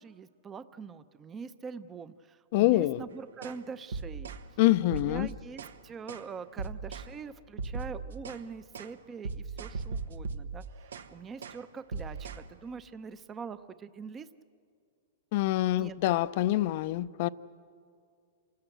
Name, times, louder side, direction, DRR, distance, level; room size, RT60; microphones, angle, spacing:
voice 1, 0.0-4.3 4.8-10.6 11.1-14.3 15.8-16.0, right 5 dB, 20° right, 0.6 m, -43 dB
voice 2, 2.5-3.0 4.6-5.3 15.3-17.3, left 16 dB, 50° left, 0.5 m, -25 dB
sound 1, 3.4-3.6 3.9-4.4 4.9-5.8 6.1-6.3 6.6-7.1 7.6-8.4 8.7-8.9 9.2-11.1 11.4-11.6 11.9-12.4, right 4 dB, 85° right, 1.1 m, -38 dB
27.5 x 18.0 x 7.9 m
hypercardioid pair, 150°, 0 cm